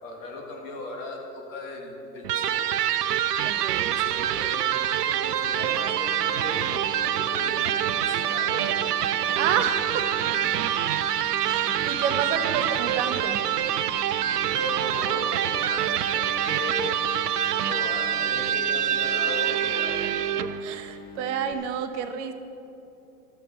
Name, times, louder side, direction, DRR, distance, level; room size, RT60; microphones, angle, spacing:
voice 1, 0.0-2.7 3.9-4.6 5.1-6.7 7.1-8.9 12.5-12.7 14.5-17.0 17.6-19.9, left 3 dB, 55° left, 0 dB, 2.3 m, -37 dB
Electric guitar, 2.2-20.6, right 10 dB, 75° right, 0.6 m, -26 dB
voice 2, 3.4-3.9 9.3-10.1 11.4-13.5 20.6-22.3, right 8 dB, 45° right, 8 dB, 0.9 m, -29 dB
sound 1, 5.5-21.5, left 7 dB, 20° left, 0.7 m, -45 dB
13.0 x 6.7 x 5.4 m, 2.8 s
figure-of-eight pair, 95°, 48 cm